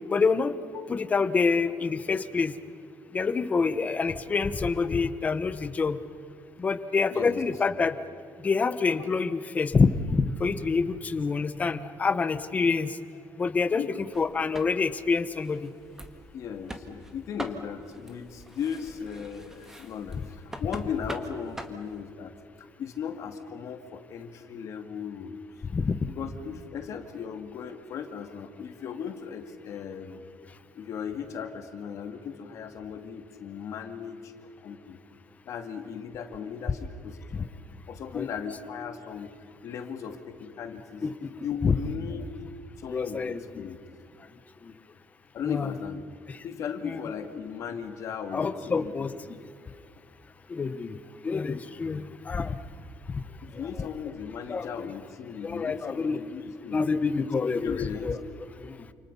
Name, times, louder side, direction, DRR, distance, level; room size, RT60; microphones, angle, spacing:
voice 1, 0.1-0.6 0.9-2.5 3.1-6.0 6.6-7.9 8.4-12.9 13.4-13.8 14.2-15.7 25.7-26.0 38.1-38.3 41.0-41.3 41.6-41.7 42.9-43.4 45.5-45.7 46.9-47.0 48.3-49.1 50.5-51.0 51.2-52.5 54.5-54.7 55.4-56.2 56.7-58.2 58.6-58.7, left 4 dB, 25° left, 11 dB, 1.1 m, -26 dB
voice 2, 7.1-7.4 13.7-14.0 16.3-22.3 22.8-25.4 26.1-30.3 30.7-34.3 34.6-35.0 35.5-37.5 37.9-39.4 39.6-41.0 41.4-42.3 42.8-43.8 45.3-46.0 46.4-48.9 53.4-56.9 57.2-57.3 57.6-58.1, left 7 dB, 55° left, 6 dB, 2.2 m, -37 dB
sound 1, 14.1-22.0, right 1 dB, 5° right, 1.8 m, -44 dB
29.0 x 28.0 x 5.5 m, 2.5 s
cardioid pair, 165°, 6 cm